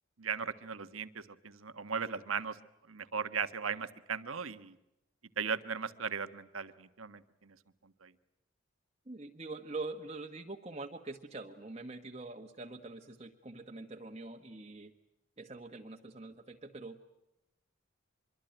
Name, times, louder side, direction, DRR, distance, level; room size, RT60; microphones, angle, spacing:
voice 1, 0.2-2.6 2.9-4.8 5.4-7.6 7.8-8.1, right 6 dB, 90° right, 11 dB, 1.4 m, -37 dB
voice 2, 9.1-14.9 15.4-17.1, right 3 dB, 30° right, 3 dB, 1.3 m, -44 dB
25.5 x 23.5 x 9.1 m, 0.88 s
head